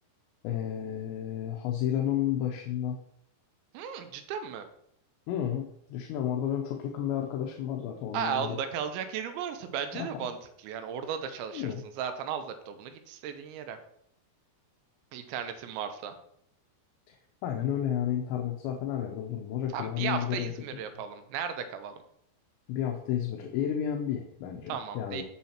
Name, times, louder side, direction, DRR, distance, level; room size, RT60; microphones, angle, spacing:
voice 1, 0.4-3.0 5.3-8.6 9.9-10.3 11.5-11.8 17.4-20.5 22.7-25.2, left 10 dB, 80° left, 2 dB, 2.9 m, -31 dB
voice 2, 3.7-4.6 8.1-10.4 10.6-13.8 15.1-16.1 19.7-22.0 24.7-25.2, right 8 dB, 90° right, 8 dB, 3.0 m, -35 dB
8.6 x 7.2 x 2.9 m, 0.70 s
omnidirectional pair, 5.2 m